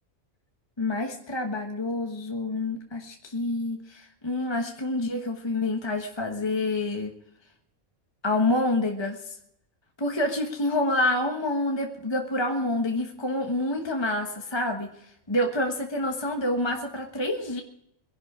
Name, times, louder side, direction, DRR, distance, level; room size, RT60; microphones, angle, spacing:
voice 1, 0.8-7.1 8.2-9.3 10.0-17.6, left 1 dB, 20° left, 2 dB, 1.2 m, -27 dB
22.0 x 11.5 x 5.0 m, 0.78 s
omnidirectional pair, 1.4 m